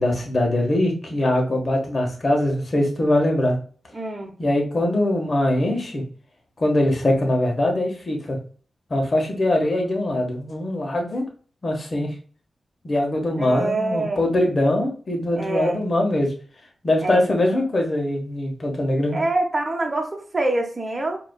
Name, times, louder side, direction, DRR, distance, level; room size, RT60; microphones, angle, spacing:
voice 1, 0.0-3.5 4.4-6.0 6.6-8.4 8.9-11.2 11.6-12.1 12.8-16.3 16.8-19.2, left 1 dB, 50° left, 1 dB, 1.4 m, -22 dB
voice 2, 3.9-4.4 13.3-14.2 15.4-15.8 17.0-17.3 19.1-21.2, right 2 dB, 35° right, 3 dB, 1.1 m, -25 dB
4.9 x 3.0 x 2.3 m, 0.42 s
cardioid pair, 50°, 0 cm